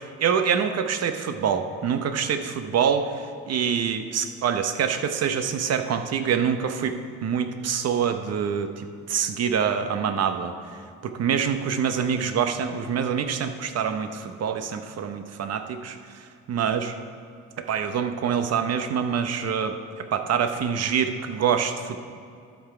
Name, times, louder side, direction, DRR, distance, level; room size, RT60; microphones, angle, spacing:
voice 1, 0.2-10.5 11.0-16.9 17.6-22.0, right 7 dB, 55° right, 8 dB, 0.8 m, -26 dB
12.5 x 5.9 x 4.8 m, 2.4 s
cardioid pair, 90°, 30 cm